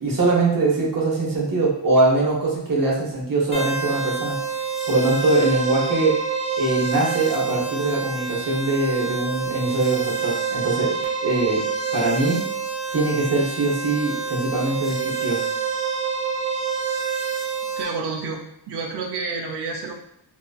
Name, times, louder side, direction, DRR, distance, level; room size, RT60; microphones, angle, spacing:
voice 1, 0.0-4.4 4.9-6.2 6.6-10.9 11.2-11.6 11.9-12.5 12.9-15.4, right 2 dB, 50° right, -2 dB, 0.9 m, -22 dB
sound 1, 3.5-17.8, right 5 dB, 15° left, 1.0 m, -27 dB
voice 2, 17.8-19.9, right 4 dB, 65° right, 1 dB, 0.5 m, -29 dB
2.8 x 2.4 x 2.3 m, 0.75 s
wide cardioid pair, 75°, 45 cm